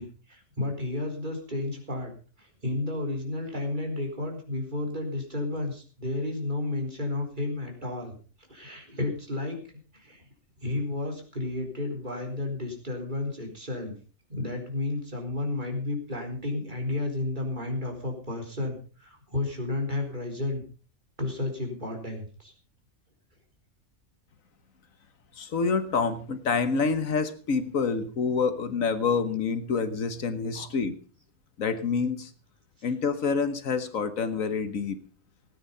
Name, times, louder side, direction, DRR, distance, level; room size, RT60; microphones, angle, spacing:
voice 1, 0.0-2.1 2.4-9.6 9.9-10.2 10.6-13.9 14.3-20.6 21.2-22.5 30.5-30.7 32.8-32.9, left 2 dB, 35° right, 2 dB, 4.3 m, -32 dB
voice 2, 25.3-31.0 31.6-32.3 32.8-35.0, left 5 dB, 70° left, 11 dB, 1.6 m, -27 dB
18.0 x 9.4 x 5.5 m, 0.39 s
omnidirectional pair, 1.4 m